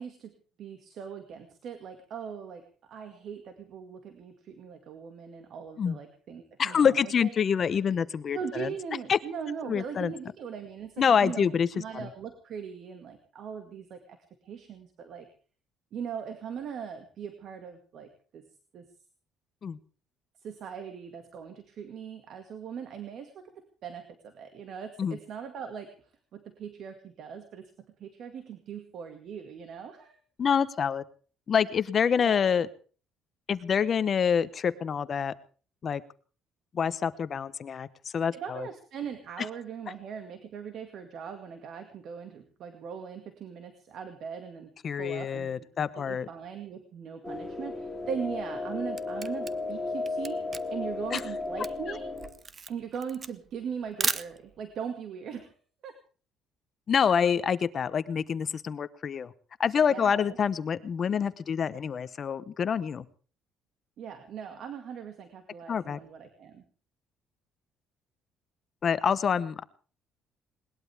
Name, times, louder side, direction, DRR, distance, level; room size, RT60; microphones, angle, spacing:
voice 1, 0.0-7.3 8.3-14.2 14.4-15.3 15.9-18.4 18.7-18.9 20.4-25.9 26.3-30.2 32.1-32.6 38.3-44.7 45.0-45.7 46.0-50.5 50.7-52.0 52.7-55.6 55.8-56.0 59.9-60.4 64.0-66.6, right 7 dB, 55° right, 7 dB, 2.0 m, -40 dB
voice 2, 6.6-8.7 9.1-9.2 9.7-10.1 11.0-11.7 11.9-12.1 19.6-19.8 25.0-25.2 30.4-31.0 31.5-32.7 33.5-35.3 35.8-36.0 36.7-38.7 44.8-46.3 51.1-51.2 56.9-59.3 59.6-63.0 65.7-66.0 68.8-69.6, left 7 dB, 35° left, 15 dB, 0.9 m, -26 dB
sound 1, 47.2-52.3, left 3 dB, 10° left, 3.2 m, -34 dB
Camera, 48.5-54.8, right 5 dB, 30° right, 0.8 m, -36 dB
20.5 x 20.0 x 3.5 m, 0.40 s
cardioid pair, 140°, 0 cm